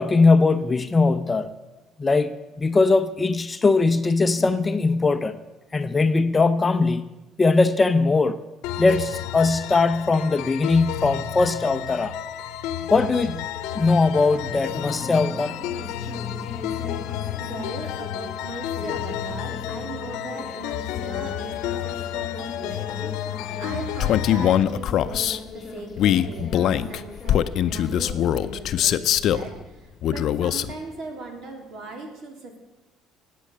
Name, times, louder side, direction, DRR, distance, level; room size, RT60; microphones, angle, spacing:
voice 1, 0.0-1.5 2.0-5.4 5.7-7.1 7.4-8.4 8.8-12.1 12.9-13.4 13.7-15.6, left 3 dB, 20° left, 10 dB, 0.6 m, -20 dB
sound 1, 8.6-24.6, left 11 dB, 85° left, 0.8 m, -32 dB
sound 2, 13.5-32.0, left 5 dB, 35° left, 1.0 m, -40 dB
voice 2, 17.4-32.6, right 2 dB, 60° right, 3 dB, 3.4 m, -39 dB
Male speech man speaking, 24.0-25.4 26.0-29.5 30.0-30.7, left 10 dB, 60° left, 0.6 m, -22 dB
19.0 x 8.4 x 6.7 m, 1.1 s
cardioid pair, 125°, 0 cm